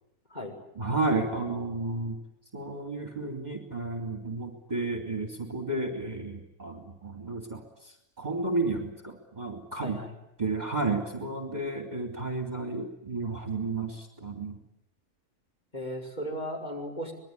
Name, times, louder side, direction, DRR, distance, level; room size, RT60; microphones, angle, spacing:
voice 1, 0.8-2.2 2.5-7.6 8.2-10.0 10.4-14.6, right 3 dB, 25° right, 4 dB, 3.1 m, -32 dB
voice 2, 9.7-10.2 15.7-17.1, equal, 25° left, 2 dB, 6.0 m, -36 dB
25.5 x 21.5 x 9.6 m, 0.82 s
omnidirectional pair, 1.6 m